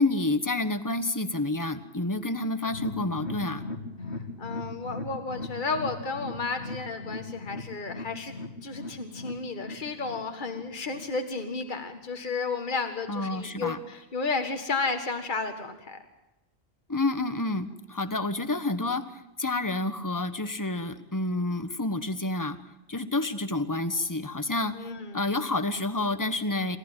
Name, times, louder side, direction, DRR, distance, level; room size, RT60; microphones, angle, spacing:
voice 1, 0.0-3.6 13.1-13.8 16.9-22.6 22.9-26.8, left 2 dB, 20° left, 11 dB, 1.4 m, -29 dB
sound 1, 2.6-11.9 12.2-12.3 12.7-12.8, left 2 dB, 85° left, 3.2 m, -39 dB
voice 2, 4.4-8.3 8.6-16.0 24.8-25.2, left 4 dB, 50° left, 6 dB, 2.0 m, -32 dB
29.0 x 14.5 x 9.1 m, 0.96 s
omnidirectional pair, 1.1 m